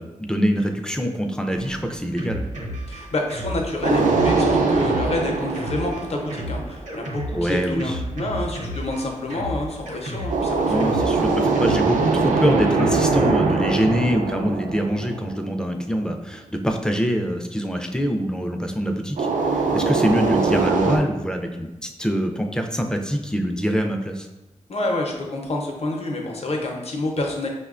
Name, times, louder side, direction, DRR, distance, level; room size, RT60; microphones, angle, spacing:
voice 1, 0.0-2.4 7.3-8.0 10.7-24.3, equal, 5° left, 4 dB, 0.3 m, -24 dB
Drum kit, 1.5-11.8, equal, 70° right, 0.8 m, -33 dB
voice 2, 2.9-10.8 24.7-27.5, left 2 dB, 55° left, 0 dB, 0.6 m, -28 dB
sound 1, 3.8-6.9 10.3-15.7 19.2-21.0, right 4 dB, 85° right, 0.4 m, -22 dB
5.2 x 2.2 x 2.4 m, 1.0 s
wide cardioid pair, 85°, 13 cm